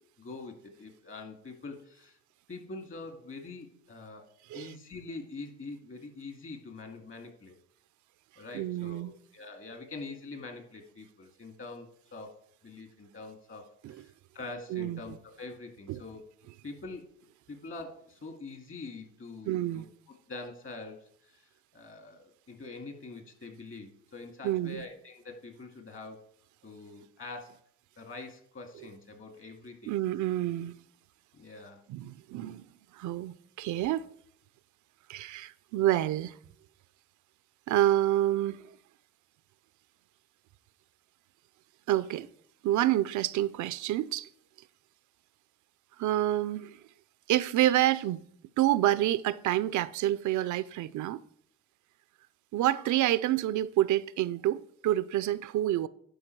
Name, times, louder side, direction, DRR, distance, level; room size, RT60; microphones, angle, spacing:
voice 1, 0.2-2.2 2.5-4.3 4.5-7.6 8.4-12.4 12.6-16.2 16.6-17.1 17.5-19.8 20.3-26.2 26.6-27.5 28.0-29.9 31.3-31.8, left 3 dB, 45° left, 2.2 m, -44 dB
voice 2, 8.5-9.1 13.8-13.9 14.7-15.2 15.9-16.0 19.4-19.9 24.4-24.8 29.9-30.7 31.9-32.6 32.9-34.1 35.1-36.4 37.7-38.7 41.9-42.3 42.6-44.3 46.0-46.8 47.3-48.2 48.6-51.2 52.5-55.9, right 14 dB, 75° right, 0.5 m, -28 dB
12.0 x 5.1 x 4.6 m
cardioid pair, 90°, 30 cm